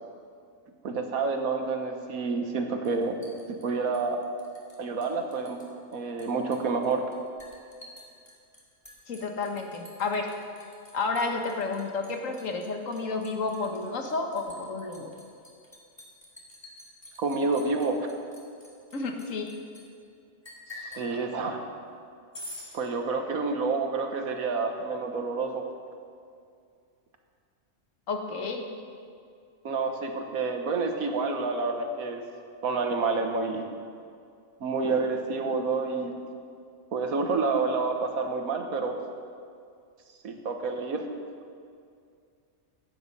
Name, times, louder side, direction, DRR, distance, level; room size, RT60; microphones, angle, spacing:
voice 1, 0.8-3.2 3.5-4.2 4.8-5.6 5.9-7.0 17.2-18.0 20.7-21.7 22.7-25.6 29.6-32.2 32.6-33.6 34.6-36.1 36.9-38.9 40.2-41.0, right 4 dB, 80° right, 4 dB, 1.6 m, -28 dB
Liquid, 2.8-4.8 5.0-5.7 5.9-19.8 20.4-21.1 22.3-22.7, left 1 dB, 20° left, 2.6 m, -48 dB
voice 2, 9.1-10.3 10.9-15.1 18.9-19.5 28.1-28.6, left 3 dB, 70° left, 4 dB, 1.6 m, -31 dB
15.5 x 9.4 x 5.4 m, 2.3 s
omnidirectional pair, 1.4 m